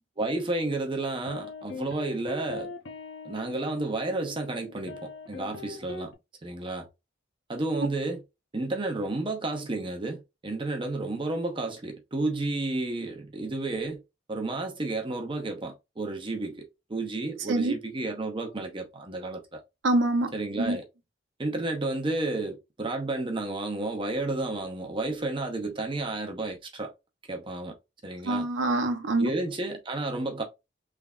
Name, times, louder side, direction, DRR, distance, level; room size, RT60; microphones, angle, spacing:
voice 1, 0.2-2.7 3.2-6.1 6.4-6.9 7.5-8.2 8.5-14.0 14.3-16.6 16.9-19.6 20.3-20.9 21.4-26.9 27.3-27.7 28.0-28.5 29.2-30.4, right 2 dB, 25° right, 0.7 m, -31 dB
sound 1, 0.7-6.1, left 3 dB, 80° left, 0.7 m, -42 dB
voice 2, 19.8-20.8 28.2-29.3, right 2 dB, 75° right, 0.6 m, -26 dB
3.5 x 3.2 x 2.4 m
head